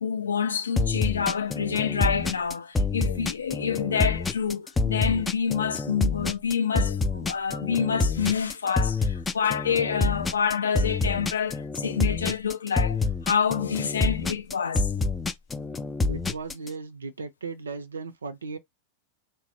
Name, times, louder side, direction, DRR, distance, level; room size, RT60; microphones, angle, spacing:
voice 1, 0.0-13.0 13.3-14.9, left 7 dB, 70° left, 0.4 m, -27 dB
sound 1, 0.8-16.7, left 3 dB, 15° left, 0.4 m, -27 dB
voice 2, 16.1-18.6, right 4 dB, 75° right, 0.5 m, -36 dB
3.3 x 2.0 x 4.0 m
figure-of-eight pair, 90°, 0 cm